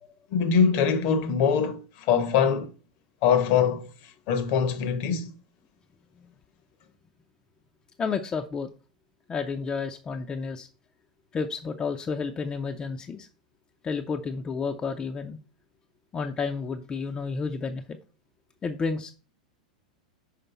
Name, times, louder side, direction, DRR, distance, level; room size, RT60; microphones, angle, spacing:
voice 1, 0.3-2.7 3.2-3.9 4.3-5.3, left 7 dB, 45° left, 0.9 m, -23 dB
voice 2, 8.0-8.7 9.3-10.7 11.3-13.3 13.8-15.4 16.1-18.0 18.6-19.1, left 5 dB, 20° left, 0.6 m, -31 dB
5.7 x 5.1 x 4.2 m
figure-of-eight pair, 90°, 4 cm